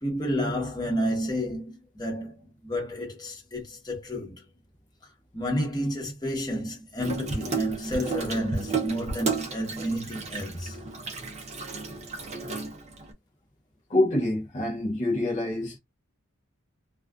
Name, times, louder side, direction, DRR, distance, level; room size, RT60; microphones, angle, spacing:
voice 1, 0.0-4.4 5.3-10.8, equal, 20° left, 1.0 m, -30 dB
Water tap faucet / Sink (filling or washing), 7.0-13.1, right 4 dB, 35° right, 0.6 m, -33 dB
voice 2, 13.9-15.8, left 1 dB, 35° left, 0.6 m, -26 dB
2.4 x 2.3 x 2.3 m
head